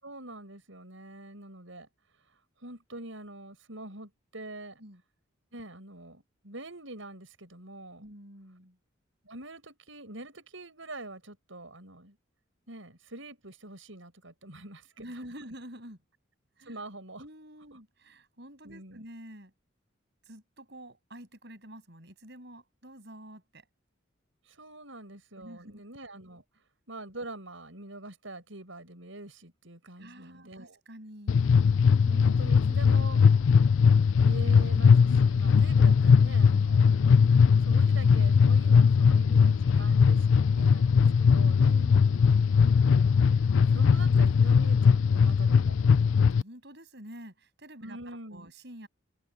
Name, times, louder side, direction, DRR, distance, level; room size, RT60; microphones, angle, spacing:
voice 1, 0.0-1.9 2.3-4.8 5.5-8.1 9.2-12.2 12.7-15.1 16.6-17.2 17.7-17.8 18.6-19.0 24.4-26.4 26.9-30.8 32.0-33.2 34.2-37.0 37.6-42.2 42.6-43.4 43.7-45.8 47.8-48.5, right 2 dB, 70° right, 6.7 m, -45 dB
voice 2, 8.0-8.8 15.0-16.0 16.6-16.8 17.2-19.5 20.3-23.7 25.4-25.8 30.0-31.5 34.4-34.9 39.0-39.2 41.6-42.1 46.3-48.9, right 1 dB, 55° right, 7.3 m, -48 dB
sound 1, 31.3-46.4, left 6 dB, 75° left, 0.4 m, -20 dB
open air
head